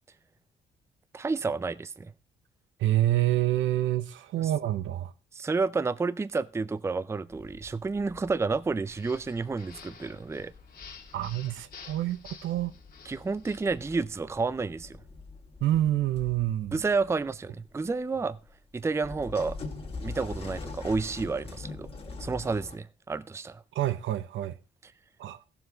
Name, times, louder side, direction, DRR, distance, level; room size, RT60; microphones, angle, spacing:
voice 1, 1.1-2.1 5.3-10.5 13.1-15.0 16.7-18.4 18.7-19.6 20.0-21.9 22.2-23.6, right 4 dB, 15° right, 0.4 m, -30 dB
voice 2, 2.8-5.1 11.1-12.7 15.6-16.7 23.7-24.5 25.2-25.4, right 13 dB, 75° right, 0.8 m, -27 dB
sound 1, 7.3-22.8, left 3 dB, 30° left, 1.9 m, -44 dB
sound 2, 8.8-13.7, left 5 dB, 50° left, 1.9 m, -50 dB
15.5 x 7.2 x 3.9 m
cardioid pair, 90°, 20 cm